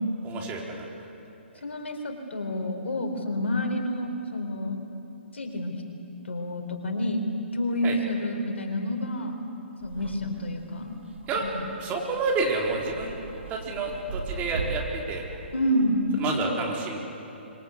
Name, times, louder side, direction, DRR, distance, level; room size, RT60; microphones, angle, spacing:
voice 1, 0.2-0.9 7.8-8.0 11.3-11.4 11.8-13.1 13.5-15.2 16.2-17.0, right 3 dB, 25° right, -1 dB, 4.2 m, -29 dB
voice 2, 1.6-4.8 5.3-5.7 6.2-7.2 7.5-9.4 9.8-11.0 11.4-11.6 15.5-16.0, left 1 dB, 75° left, 4 dB, 4.0 m, -29 dB
sound 1, 9.8-15.9, right 3 dB, 80° right, 2.9 m, -39 dB
25.5 x 23.5 x 8.3 m, 2.9 s
figure-of-eight pair, 135°, 6 cm